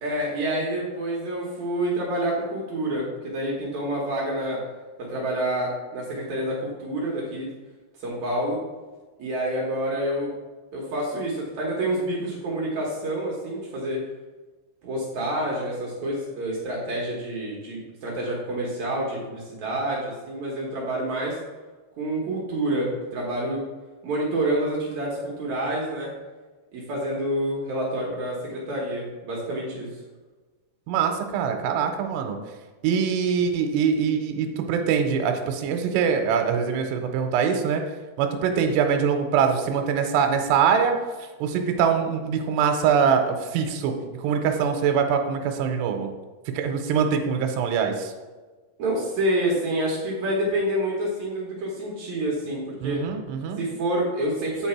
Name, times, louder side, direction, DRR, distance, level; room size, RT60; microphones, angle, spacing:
voice 1, 0.0-4.6 5.0-7.5 8.0-8.6 9.2-10.3 10.7-14.0 14.8-21.4 22.0-23.6 24.0-26.1 26.7-29.9 48.8-53.0 53.6-54.7, right 1 dB, 65° right, -3 dB, 1.8 m, -28 dB
voice 2, 30.9-32.4 32.8-37.8 38.2-40.9 41.4-43.9 44.2-46.1 46.5-48.1 52.8-53.6, right 7 dB, 85° right, 4 dB, 2.8 m, -23 dB
8.8 x 4.6 x 4.4 m, 1.3 s
omnidirectional pair, 5.0 m